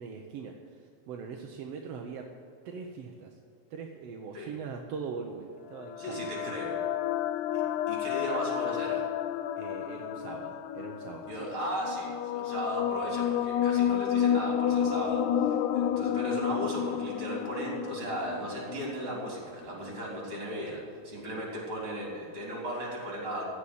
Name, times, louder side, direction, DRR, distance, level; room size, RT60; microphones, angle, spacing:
voice 1, 0.0-2.3 2.7-3.4 3.7-6.6 9.6-11.4, right 5 dB, 65° right, 2 dB, 1.7 m, -41 dB
sound 1, 5.7-19.4, left 9 dB, 85° left, 2.0 m, -31 dB
voice 2, 6.0-6.8 7.5-7.6 7.9-9.0 11.3-23.5, right 1 dB, 40° right, -3 dB, 4.4 m, -36 dB
16.0 x 5.7 x 10.0 m, 2.3 s
omnidirectional pair, 3.4 m